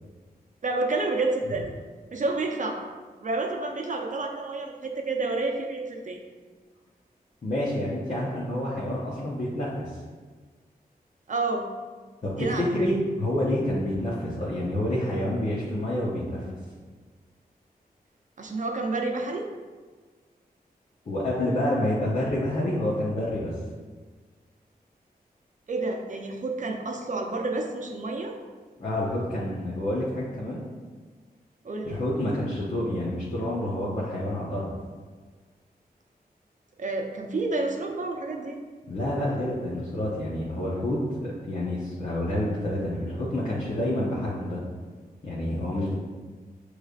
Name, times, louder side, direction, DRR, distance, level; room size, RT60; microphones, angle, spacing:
voice 1, 0.6-1.7 2.1-2.8 3.2-6.2 11.3-11.7 12.3-12.9 18.4-19.5 25.7-28.3 31.6-32.0 36.8-38.6, right 3 dB, 55° right, 2 dB, 0.6 m, -29 dB
voice 2, 7.4-10.0 12.2-16.4 21.1-23.5 28.8-30.6 31.9-34.7 38.9-44.6 45.2-45.9, left 1 dB, 50° left, -8 dB, 0.8 m, -28 dB
6.4 x 3.2 x 2.4 m, 1.4 s
wide cardioid pair, 95°, 16 cm